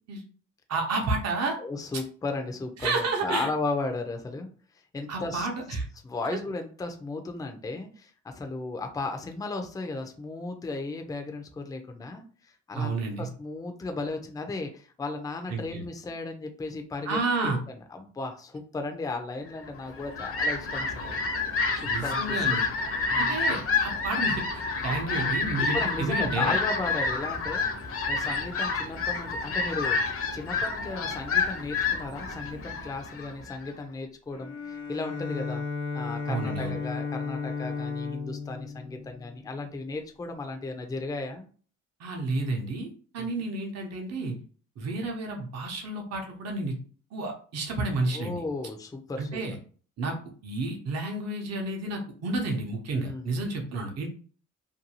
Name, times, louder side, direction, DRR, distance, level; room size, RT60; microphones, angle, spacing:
voice 1, 0.7-1.6 2.8-3.5 5.1-5.8 12.7-13.3 15.5-15.9 17.1-17.6 21.8-22.6 23.1-26.6 36.3-36.8 42.0-42.9 43.1-44.4 44.8-46.7 47.1-48.4 49.2-49.6 50.0-50.1 50.4-54.1, right 3 dB, 60° right, 1 dB, 0.7 m, -30 dB
voice 2, 1.6-4.5 4.9-5.5 6.0-21.2 21.7-22.6 23.1-23.5 25.6-35.6 35.9-41.5 43.2-43.3 48.1-49.4 52.9-53.4, left 3 dB, 10° left, 5 dB, 0.4 m, -35 dB
Fowl, 19.8-33.7, left 4 dB, 50° left, 0.6 m, -29 dB
Bowed string instrument, 34.3-39.8, left 5 dB, 80° left, 0.9 m, -34 dB
2.6 x 2.3 x 2.8 m, 0.42 s
cardioid pair, 90°, 30 cm